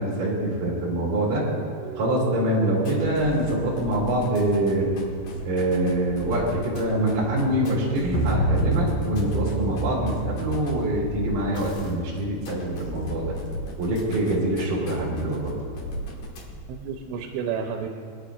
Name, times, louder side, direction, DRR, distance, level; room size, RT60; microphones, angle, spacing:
voice 1, 0.0-1.4 2.0-4.9 5.4-13.3 13.8-15.5, right 1 dB, 50° right, -5 dB, 3.8 m, -25 dB
sound 1, 2.8-16.8, equal, 55° left, 2.9 m, -37 dB
sound 2, 8.1-12.6, right 1 dB, 40° left, 2.7 m, -28 dB
voice 2, 16.7-17.9, right 7 dB, 90° right, 2 dB, 3.0 m, -31 dB
26.0 x 10.0 x 2.5 m, 2.1 s
omnidirectional pair, 4.9 m